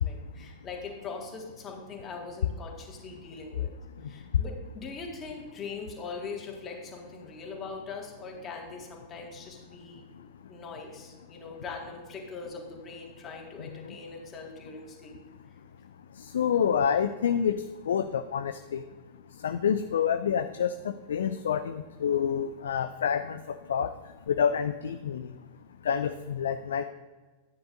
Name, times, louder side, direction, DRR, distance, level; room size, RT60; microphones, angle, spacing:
voice 1, 0.0-3.7 4.0-10.1 10.5-15.2, left 4 dB, 25° left, 1 dB, 2.0 m, -41 dB
voice 2, 16.3-18.8 19.4-23.4 23.7-23.9 24.3-25.3 25.9-26.8, left 7 dB, 65° left, 10 dB, 0.4 m, -27 dB
13.5 x 9.3 x 2.6 m, 1.3 s
figure-of-eight pair, 90°, 0 cm